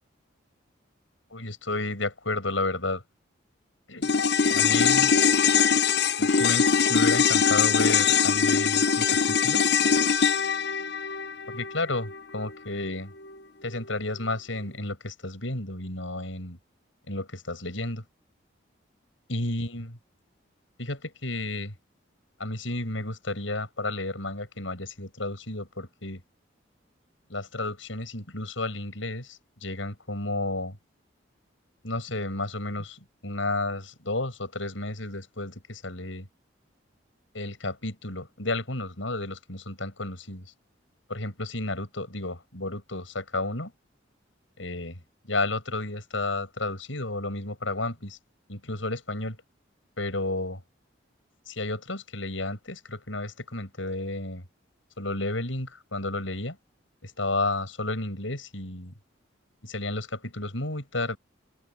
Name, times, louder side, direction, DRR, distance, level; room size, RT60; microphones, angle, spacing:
voice 1, 1.3-3.0 3.9-4.1 4.5-5.1 6.2-9.7 11.5-13.1 13.6-16.6 17.1-18.0 19.3-20.0 20.8-21.7 22.4-26.2 27.3-30.8 31.8-36.3 37.3-40.5 41.1-43.7 44.6-48.2 48.5-49.4 50.0-50.6 51.5-54.4 55.0-56.6 57.0-58.9 59.6-61.2, left 2 dB, 85° left, 7.7 m, -32 dB
sound 1, 4.0-12.5 12.8-12.9, left 6 dB, 55° left, 0.9 m, -22 dB
head